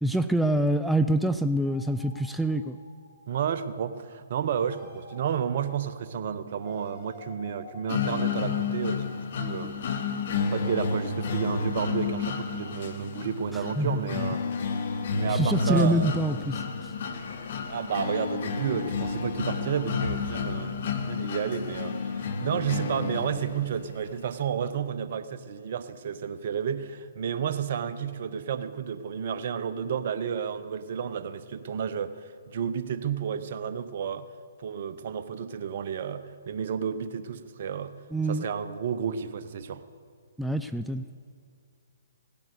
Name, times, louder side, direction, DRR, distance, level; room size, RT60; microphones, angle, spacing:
voice 1, 0.0-2.8 13.5-14.1 15.3-16.9 38.1-38.5 40.4-41.1, right 1 dB, ahead, 8 dB, 0.4 m, -26 dB
sound 1, 1.6-8.3, left 3 dB, 20° left, 4.2 m, -51 dB
voice 2, 3.3-9.7 10.5-14.4 15.1-16.1 17.7-34.3 34.6-38.0 38.3-39.8, right 8 dB, 50° right, 11 dB, 0.9 m, -31 dB
sound 2, 7.9-23.9, left 5 dB, 55° left, 1.3 m, -31 dB
17.5 x 10.5 x 6.8 m, 2.3 s
figure-of-eight pair, 130°, 0 cm